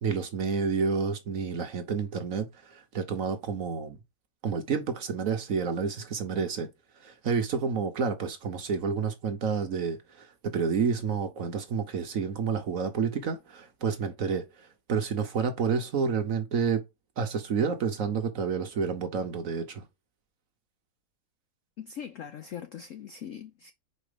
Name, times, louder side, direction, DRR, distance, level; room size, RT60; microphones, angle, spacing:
voice 1, 0.0-4.0 4.4-6.7 7.0-16.8 17.2-19.8, right 5 dB, 55° right, 1.1 m, -29 dB
voice 2, 21.8-23.7, left 8 dB, 85° left, 0.6 m, -41 dB
5.4 x 4.7 x 5.0 m
omnidirectional pair, 2.1 m